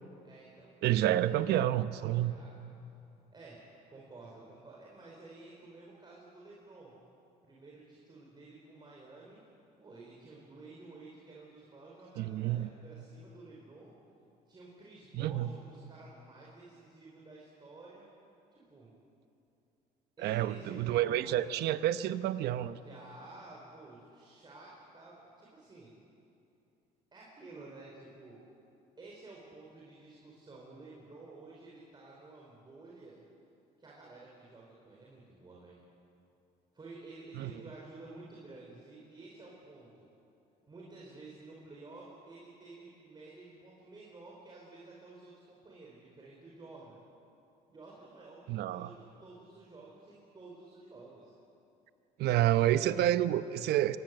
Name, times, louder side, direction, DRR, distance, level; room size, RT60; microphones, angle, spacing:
voice 1, 0.2-0.7 2.1-2.5 3.3-3.6 3.9-6.9 7.4-9.4 9.8-13.9 14.5-18.1 18.5-18.9 20.2-21.4 22.7-25.9 27.1-28.4 29.0-33.2 33.8-35.8 36.7-40.1 40.7-47.0 47.7-51.3, right 3 dB, 25° right, -4 dB, 4.8 m, -52 dB
voice 2, 0.8-2.3 12.2-12.7 15.1-15.5 20.2-22.8 37.4-37.5 48.5-48.9 52.2-54.0, right 13 dB, 75° right, 13 dB, 0.9 m, -29 dB
25.0 x 19.5 x 7.9 m, 2.7 s
cardioid pair, 110°, 17 cm